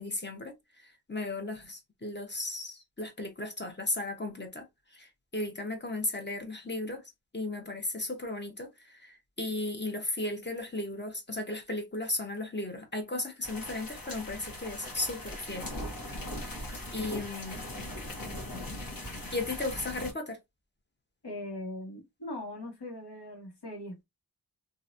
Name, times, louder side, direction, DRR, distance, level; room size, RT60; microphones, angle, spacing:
voice 1, 0.0-4.7 4.9-7.0 7.3-15.7 16.4-16.7 16.9-17.6 19.3-20.4, left 2 dB, 25° left, 1.1 m, -35 dB
sound 1, 13.4-20.1, left 1 dB, 60° left, 1.3 m, -40 dB
voice 2, 21.2-24.0, left 1 dB, 90° left, 1.3 m, -40 dB
3.0 x 2.6 x 2.6 m
wide cardioid pair, 50°, 40 cm